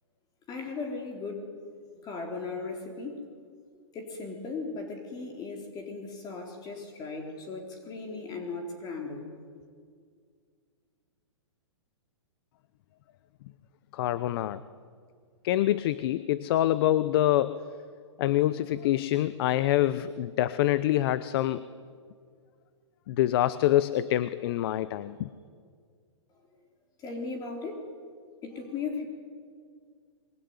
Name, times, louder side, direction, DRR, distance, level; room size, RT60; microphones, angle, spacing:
voice 1, 0.5-1.5 2.0-3.3 3.9-9.3 27.0-27.8 28.4-29.1, left 4 dB, 25° left, 2 dB, 4.1 m, -37 dB
voice 2, 13.9-14.6 15.4-17.6 18.2-21.6 23.1-25.3, left 13 dB, 50° left, 15 dB, 0.9 m, -26 dB
24.5 x 23.5 x 9.8 m, 2.1 s
hypercardioid pair, 135°, 16 cm